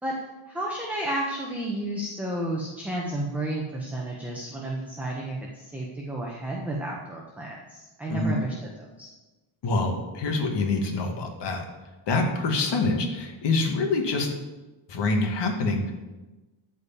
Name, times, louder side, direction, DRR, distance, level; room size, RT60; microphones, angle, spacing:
voice 1, 0.5-9.1, right 1 dB, 5° right, -3 dB, 1.3 m, -32 dB
voice 2, 9.6-11.7 12.1-14.3 14.9-15.9, left 3 dB, 55° left, 2 dB, 2.3 m, -25 dB
13.0 x 5.2 x 7.3 m, 1.1 s
cardioid pair, 145°, 50 cm